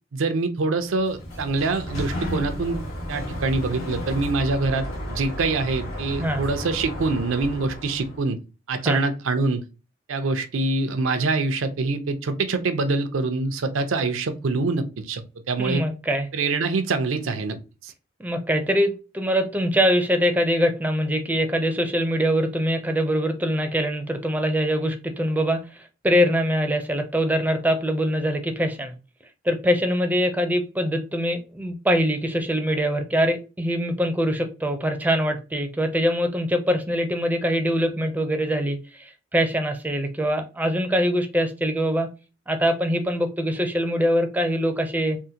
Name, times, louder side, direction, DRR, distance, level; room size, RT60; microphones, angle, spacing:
voice 1, 0.1-2.8 3.1-8.4 8.7-9.6 10.1-15.8 16.3-17.6 17.8-17.9, right 3 dB, 85° right, 0.5 m, -25 dB
Sliding door, 0.9-8.2, equal, 85° left, 1.3 m, -33 dB
voice 2, 15.6-16.3 18.2-28.9 29.4-42.1 42.5-45.2, equal, 10° right, 0.4 m, -23 dB
3.6 x 2.1 x 2.7 m
head